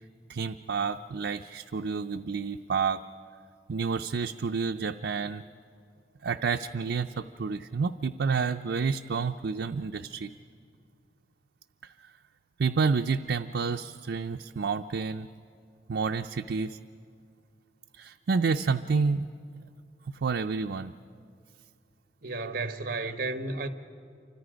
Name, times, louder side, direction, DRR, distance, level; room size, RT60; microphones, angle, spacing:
voice 1, 0.3-3.0 3.7-5.4 6.2-10.3 11.8-11.9 12.6-15.3 15.9-16.8 18.0-19.3 20.1-20.9, right 5 dB, 75° right, 0.5 m, -29 dB
voice 2, 22.2-23.7, right 3 dB, 55° right, 1.2 m, -32 dB
28.5 x 25.5 x 5.1 m
head